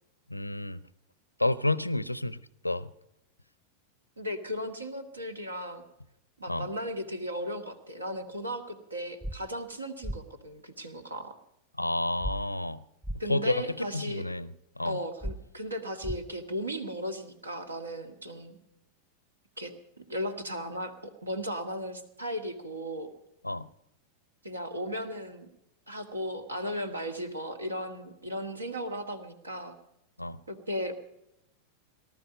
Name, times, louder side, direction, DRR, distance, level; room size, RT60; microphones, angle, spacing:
voice 1, 0.3-0.8 1.4-2.4 2.6-2.9 6.5-6.7 11.8-12.8 13.3-14.5 14.8-15.0 23.4-23.7 30.2-30.4, left 2 dB, 85° left, 0.6 m, -30 dB
voice 2, 4.2-5.8 6.4-11.4 13.2-14.2 14.8-18.6 19.6-19.7 20.1-23.1 24.4-25.5 25.9-29.8 30.5-30.9, equal, 80° right, 1.7 m, -36 dB
sound 1, 9.2-9.4 10.0-10.2 12.2-12.3 13.0-13.2 15.2-15.3 16.0-16.2, right 1 dB, 10° right, 0.8 m, -33 dB
19.0 x 12.5 x 5.3 m
figure-of-eight pair, 90°, 0 cm